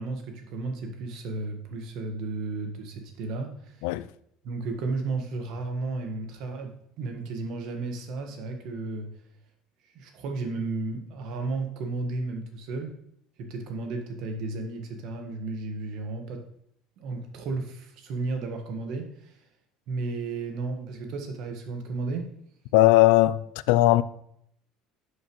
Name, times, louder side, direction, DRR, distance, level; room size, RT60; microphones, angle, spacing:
voice 1, 0.0-3.9 4.4-9.1 9.9-12.9 13.4-16.4 17.0-19.4 19.9-22.3, right 3 dB, 55° right, 1.4 m, -33 dB
voice 2, 22.7-24.0, left 16 dB, 85° left, 0.3 m, -19 dB
11.0 x 6.5 x 3.1 m
cardioid pair, 160°, 0 cm